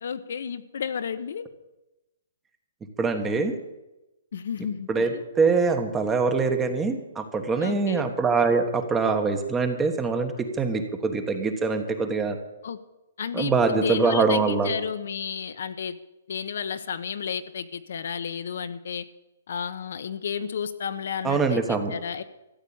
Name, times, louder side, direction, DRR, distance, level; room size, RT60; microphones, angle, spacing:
voice 1, 0.0-1.5 4.3-5.2 7.6-8.0 12.6-12.8 13.2-16.0 16.3-19.0 19.5-22.2, left 7 dB, 60° left, 11 dB, 1.0 m, -32 dB
voice 2, 3.0-3.5 4.9-12.4 13.3-14.7 21.2-21.9, right 4 dB, 10° right, 7 dB, 1.1 m, -24 dB
14.0 x 8.0 x 8.7 m, 0.97 s
hypercardioid pair, 170°, 0 cm